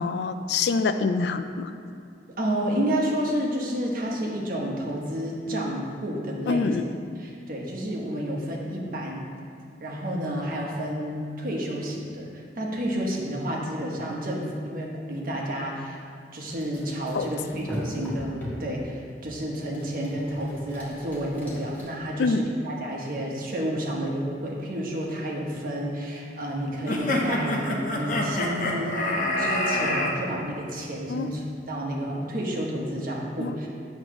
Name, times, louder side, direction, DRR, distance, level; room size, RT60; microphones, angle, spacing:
voice 1, 0.0-1.7 6.5-6.8 17.1-17.3 22.2-22.4 31.1-31.3 33.4-33.5, left 4 dB, 65° left, 9 dB, 0.4 m, -25 dB
voice 2, 2.3-6.8 7.2-9.3 9.8-16.0 16.3-33.7, equal, 50° right, -2 dB, 1.1 m, -30 dB
sound 1, 16.5-18.7 19.7-21.8, equal, 10° left, 1.7 m, -39 dB
sound 2, 26.9-30.1, left 1 dB, 45° left, 0.8 m, -26 dB
8.6 x 3.2 x 6.2 m, 2.4 s
head